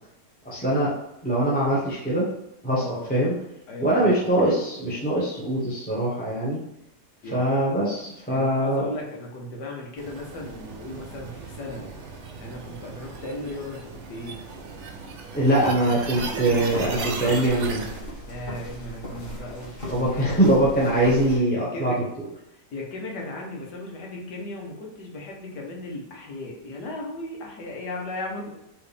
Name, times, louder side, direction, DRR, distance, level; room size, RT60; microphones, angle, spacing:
voice 1, 0.4-0.9 1.2-2.2 2.6-2.8 3.1-3.3 3.8-6.6 7.3-8.9 15.3-17.9 19.9-22.0, right 1 dB, 5° left, -7 dB, 0.8 m, -22 dB
voice 2, 2.8-3.1 3.7-4.3 7.2-7.4 8.3-11.9 12.4-13.8 14.1-14.4 18.3-20.6 20.8-22.1 22.5-28.5, left 1 dB, 85° left, -1 dB, 1.7 m, -36 dB
sound 1, 10.0-18.0, right 4 dB, 55° right, 0.8 m, -36 dB
sound 2, 16.0-21.4, equal, 30° left, 1.8 m, -38 dB
4.7 x 3.2 x 3.3 m, 0.85 s
omnidirectional pair, 1.8 m